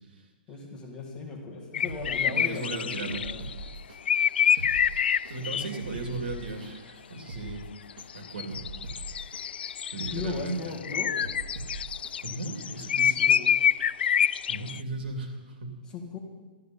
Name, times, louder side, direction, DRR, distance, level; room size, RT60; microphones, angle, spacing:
voice 1, 0.5-3.5 5.4-5.7 10.1-11.2 13.2-13.5 15.9-16.2, left 4 dB, 15° left, -1 dB, 2.0 m, -38 dB
sound 1, 1.7-3.5 4.1-5.8 7.9-14.8, left 8 dB, 85° left, 0.3 m, -26 dB
sound 2, 1.9-2.6 3.1-4.0 4.4-5.3 5.8-6.7 7.1-8.1 8.5-9.4 9.9-10.8 11.2-12.1 12.6-12.7, right 2 dB, 60° right, 2.4 m, -41 dB
voice 2, 2.2-3.5 4.5-4.8 5.3-7.6 8.1-8.6 9.9-10.7 12.2-13.2 14.5-15.8, right 3 dB, 80° right, 3 dB, 2.8 m, -36 dB
13.0 x 12.5 x 5.5 m, 1.3 s
hypercardioid pair, 170°, 5 cm